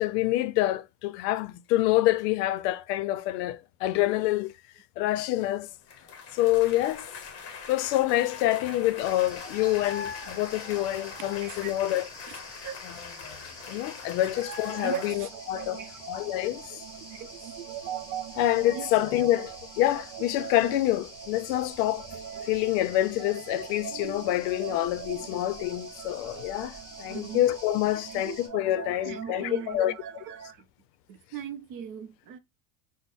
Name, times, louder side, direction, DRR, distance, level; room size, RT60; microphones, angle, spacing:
voice 1, 0.0-4.5 5.0-5.7 6.3-7.1 7.7-12.1 12.8-12.9 13.7-15.8 16.1-16.8 18.4-22.1 22.4-30.2, left 15 dB, 85° left, 0.6 m, -27 dB
sound 1, 5.9-15.1, left 5 dB, 30° left, 0.7 m, -41 dB
sound 2, 9.0-28.5, left 1 dB, 10° left, 1.1 m, -48 dB
voice 2, 11.2-11.7 12.3-12.8 14.2-16.0 17.1-17.3 18.7-18.9 27.1-27.5 27.9-28.2 28.9-30.0 30.2-30.3 31.1-32.4, right 8 dB, 45° right, 0.6 m, -40 dB
sound 3, 14.8-30.5, right 9 dB, 85° right, 0.7 m, -42 dB
4.0 x 2.1 x 3.4 m
cardioid pair, 145°, 47 cm